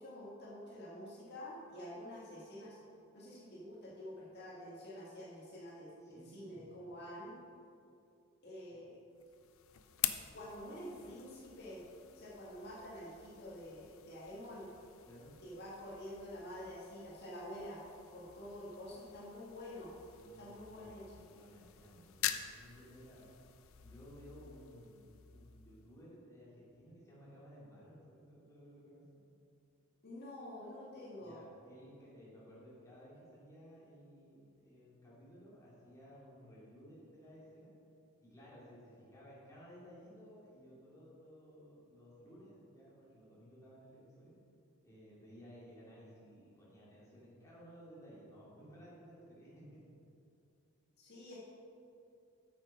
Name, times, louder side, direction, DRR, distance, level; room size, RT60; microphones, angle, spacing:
voice 1, 0.0-2.8 3.1-7.4 8.4-9.0 10.3-11.8 12.1-14.7 15.4-17.8 18.1-20.0 20.4-21.2 30.0-31.4 51.0-51.4, left 1 dB, 50° left, -7 dB, 1.9 m, -48 dB
voice 2, 6.0-6.7 15.0-15.3 20.2-21.0 21.3-23.3 23.8-29.0 31.1-37.7 38.2-44.4 44.8-49.8, equal, 15° left, -8 dB, 2.4 m, -57 dB
sound 1, 9.2-26.1, left 12 dB, 65° left, 0.5 m, -46 dB
8.9 x 6.7 x 5.2 m, 2.6 s
head